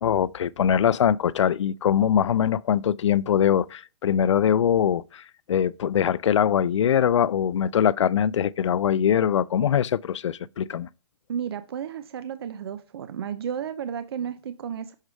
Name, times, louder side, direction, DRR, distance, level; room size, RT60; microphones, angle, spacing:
voice 1, 0.0-5.2 5.5-10.9, left 9 dB, 75° left, 0.4 m, -22 dB
voice 2, 11.3-14.9, right 8 dB, 55° right, 0.6 m, -33 dB
6.5 x 4.8 x 3.1 m
hypercardioid pair, 165°, 15 cm